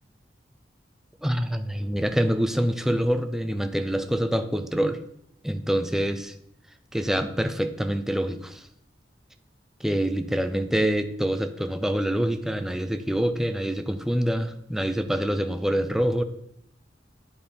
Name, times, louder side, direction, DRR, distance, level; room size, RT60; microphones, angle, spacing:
voice 1, 1.2-5.0 5.4-6.3 6.9-8.7 9.8-16.2, equal, 5° right, 8 dB, 0.5 m, -26 dB
10.0 x 4.3 x 5.2 m, 0.73 s
head